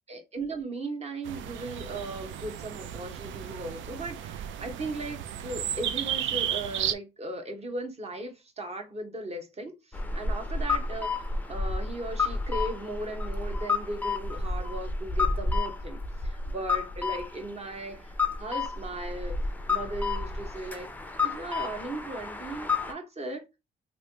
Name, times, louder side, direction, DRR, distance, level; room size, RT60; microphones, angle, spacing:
voice 1, 0.1-20.9 21.2-23.4, right 2 dB, 30° right, 1.0 m, -37 dB
sound 1, 1.2-6.9, right 10 dB, 75° right, 0.4 m, -34 dB
sound 2, 9.9-22.9, left 3 dB, 10° left, 0.5 m, -31 dB
3.2 x 2.6 x 2.8 m
cardioid pair, 90°, 20 cm